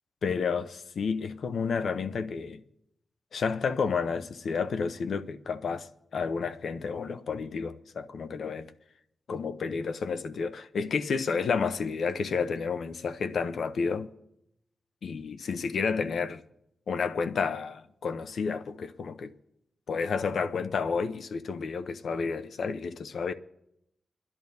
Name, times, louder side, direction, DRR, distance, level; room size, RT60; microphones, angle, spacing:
voice 1, 0.2-2.6 3.3-8.7 9.3-14.1 15.0-16.4 16.9-19.3 19.9-23.3, left 5 dB, 80° left, 0.7 m, -31 dB
27.5 x 11.0 x 2.7 m
cardioid pair, 80°, 0 cm